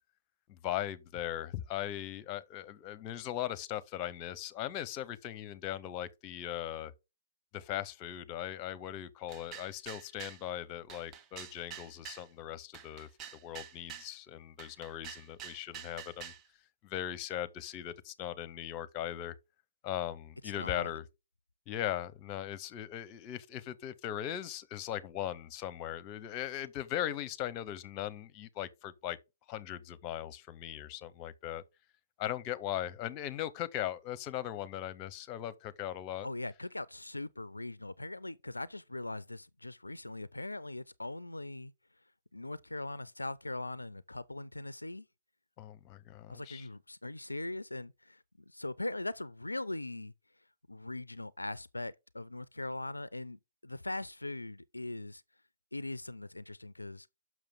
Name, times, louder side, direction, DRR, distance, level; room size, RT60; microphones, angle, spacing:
voice 1, 0.5-6.9 7.5-13.1 13.4-16.3 16.8-19.3 19.8-21.1 21.7-29.2 29.5-31.6 32.2-36.3 45.6-46.7, left 12 dB, 30° left, 0.8 m, -39 dB
sound 1, 9.3-10.4 10.9-12.3 12.7-14.1 14.6-16.4, right 9 dB, 25° right, 0.7 m, -47 dB
voice 2, 20.6-21.0 36.2-41.7 42.3-45.1 46.3-50.1 50.7-55.2 55.7-57.1, left 2 dB, 85° left, 0.3 m, -40 dB
6.7 x 6.1 x 3.6 m
figure-of-eight pair, 120°, 0 cm